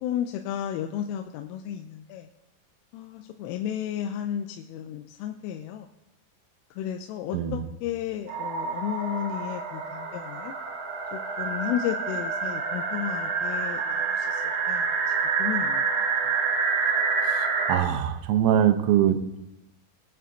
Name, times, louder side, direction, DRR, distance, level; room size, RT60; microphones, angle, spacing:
voice 1, 0.0-2.3 2.9-5.9 6.8-10.5 11.1-15.0 15.4-15.8, left 10 dB, 90° left, 4 dB, 3.2 m, -33 dB
voice 2, 7.3-7.7 17.3-19.2, right 10 dB, 90° right, 7 dB, 3.5 m, -23 dB
sound 1, 8.3-17.8, right 5 dB, 60° right, 3.3 m, -27 dB
22.5 x 8.8 x 2.7 m, 0.89 s
omnidirectional pair, 5.7 m